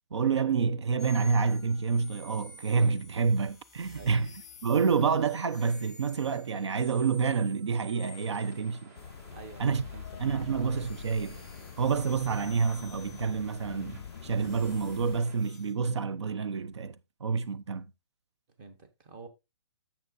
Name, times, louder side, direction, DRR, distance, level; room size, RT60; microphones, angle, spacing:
voice 1, 0.1-4.3 4.6-8.9 9.6-9.8 10.2-11.4 11.8-17.0 17.2-17.9, right 5 dB, 85° right, 0.6 m, -28 dB
sound 1, 1.0-9.3 10.0-15.7, left 3 dB, ahead, 1.3 m, -52 dB
voice 2, 3.9-4.2 9.3-10.2 18.6-19.3, right 3 dB, 20° right, 1.1 m, -48 dB
sound 2, 8.1-15.4, right 3 dB, 40° right, 2.2 m, -55 dB
sound 3, 9.0-15.2, left 8 dB, 65° left, 0.4 m, -45 dB
11.0 x 7.3 x 2.6 m
hypercardioid pair, 170°, 14 cm